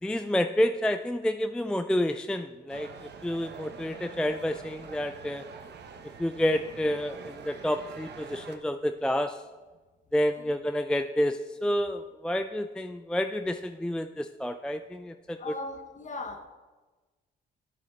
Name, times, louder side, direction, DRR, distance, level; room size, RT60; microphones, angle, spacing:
voice 1, 0.0-5.5 6.2-9.4 10.1-15.5, equal, 5° left, 8 dB, 0.4 m, -29 dB
sound 1, 2.7-8.6, right 5 dB, 60° right, 1.0 m, -45 dB
voice 2, 15.4-16.5, left 3 dB, 40° left, 7 dB, 1.3 m, -38 dB
11.5 x 7.4 x 4.1 m, 1.3 s
cardioid pair, 90°, 20 cm